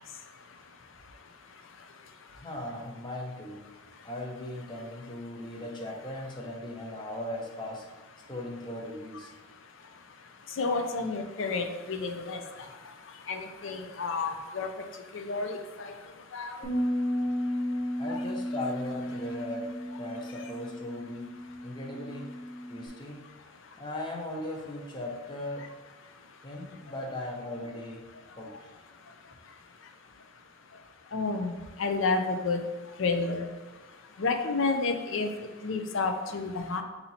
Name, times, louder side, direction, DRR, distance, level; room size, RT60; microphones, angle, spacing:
voice 1, 2.3-3.6 4.0-7.9 8.3-9.3 18.0-21.3 21.6-22.3 22.7-23.3 23.7-25.7 26.4-28.0 28.4-28.7, left 1 dB, 20° left, 0 dB, 0.6 m, -38 dB
voice 2, 10.5-12.7 13.3-14.7 15.1-15.9 16.3-16.6 18.1-18.2 31.1-32.6 33.0-33.5 34.2-36.8, left 3 dB, 60° left, 6 dB, 0.5 m, -30 dB
Bass guitar, 16.6-22.9, equal, 20° right, 0.8 m, -33 dB
4.3 x 2.7 x 4.1 m, 1.3 s
head